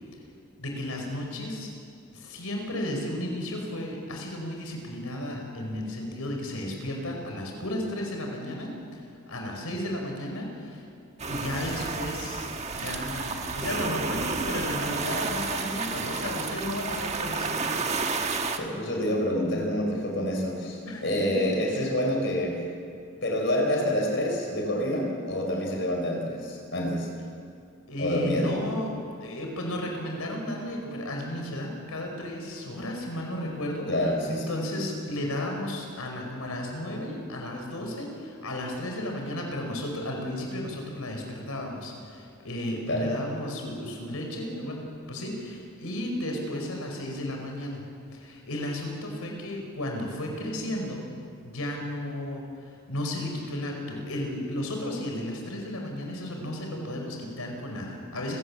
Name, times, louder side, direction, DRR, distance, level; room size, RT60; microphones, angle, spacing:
voice 1, 0.6-1.7 2.1-9.0 9.3-10.8 11.3-17.6 20.9-21.5 27.9-33.9 34.3-44.8 45.1-47.8 48.1-51.0 51.4-58.4, left 1 dB, 90° left, 1 dB, 5.2 m, -34 dB
Ocean Philippines calm waves Cebub, 11.2-18.6, right 4 dB, 30° right, 1.4 m, -31 dB
voice 2, 18.6-22.6 23.2-27.1 28.0-28.5 33.9-34.4 42.9-43.1, left 1 dB, 55° left, 1 dB, 4.8 m, -27 dB
29.0 x 16.5 x 7.3 m, 2.4 s
head